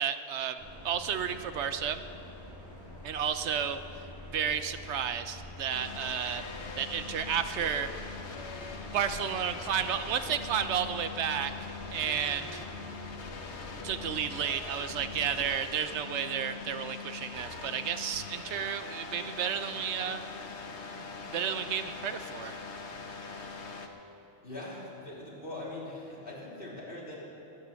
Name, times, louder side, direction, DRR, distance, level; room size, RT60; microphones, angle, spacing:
voice 1, 0.0-2.0 3.0-3.8 4.3-6.4 6.8-7.9 8.9-11.5 11.9-12.6 13.8-20.2 21.0-22.6, right 8 dB, 80° right, 10 dB, 1.0 m, -32 dB
sound 1, 0.6-15.6, left 1 dB, 15° left, 3.7 m, -46 dB
sound 2, 5.7-23.9, left 4 dB, 80° left, 1.4 m, -42 dB
voice 2, 24.4-27.1, left 2 dB, 55° left, -6 dB, 3.8 m, -41 dB
19.5 x 8.9 x 7.0 m, 3.0 s
omnidirectional pair, 1.2 m